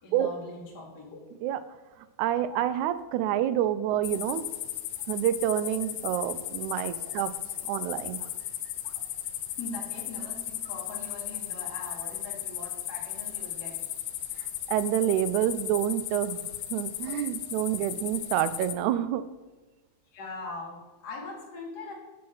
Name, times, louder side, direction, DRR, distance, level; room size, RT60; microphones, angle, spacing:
voice 1, 0.0-1.2 3.3-3.5 7.5-8.0 8.9-9.0 9.6-13.8 17.1-17.2 17.7-17.8 20.1-21.9, left 3 dB, 40° left, -2 dB, 1.7 m, -42 dB
voice 2, 2.2-4.5 5.1-7.3 7.7-8.2 14.7-16.5 16.7-19.3, right 11 dB, 90° right, 13 dB, 2.0 m, -28 dB
sound 1, 4.0-18.7, left 12 dB, 75° left, 1.7 m, -36 dB
7.5 x 6.4 x 5.7 m, 1.2 s
omnidirectional pair, 3.3 m